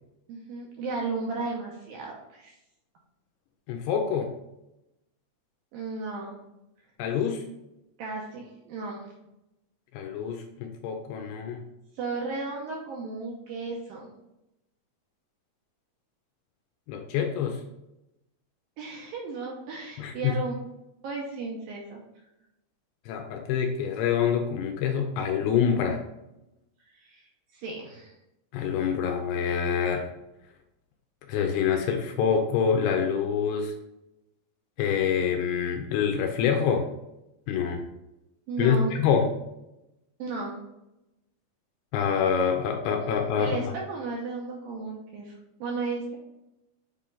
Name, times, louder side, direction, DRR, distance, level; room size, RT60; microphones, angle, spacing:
voice 1, 0.3-2.6 5.7-6.3 8.0-9.1 11.9-14.1 18.8-20.5 21.0-22.0 26.9-27.3 27.5-28.1 38.5-39.0 40.2-40.6 43.4-46.2, right 3 dB, 75° right, -1 dB, 2.2 m, -34 dB
voice 2, 3.7-4.3 7.0-7.4 9.9-11.6 16.9-17.6 20.0-20.4 23.1-26.0 28.5-30.1 31.3-33.7 34.8-36.8 37.5-37.8 38.6-39.2 41.9-43.7, left 7 dB, 80° left, 4 dB, 2.5 m, -26 dB
7.5 x 4.4 x 3.9 m, 0.91 s
omnidirectional pair, 5.0 m